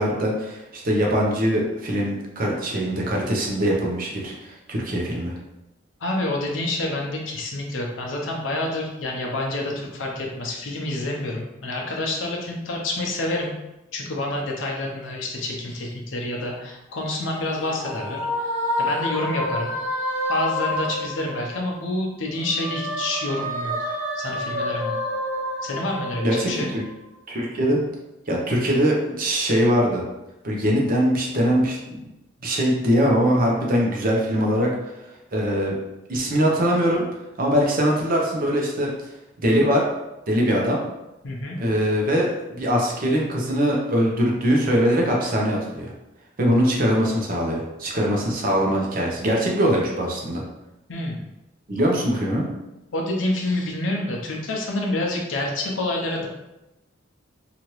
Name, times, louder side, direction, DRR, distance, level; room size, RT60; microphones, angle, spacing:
voice 1, 0.0-5.4 26.2-26.8 27.3-27.8 28.3-30.0 30.4-32.0 32.4-34.7 35.3-35.8 36.1-37.0 37.4-38.9 39.4-39.9 40.3-40.8 41.6-45.9 46.4-50.4 51.7-52.5, equal, 45° right, -2 dB, 0.7 m, -22 dB
voice 2, 6.0-13.5 13.9-18.2 18.8-19.7 20.3-23.9 24.2-24.9 25.6-26.7 41.2-41.6 50.9-51.2 52.9-56.3, left 1 dB, 75° left, 0 dB, 0.7 m, -28 dB
sound 1, 16.9-21.9 22.3-27.0, left 1 dB, 15° right, 0.8 m, -29 dB
2.9 x 2.5 x 3.0 m, 0.93 s
head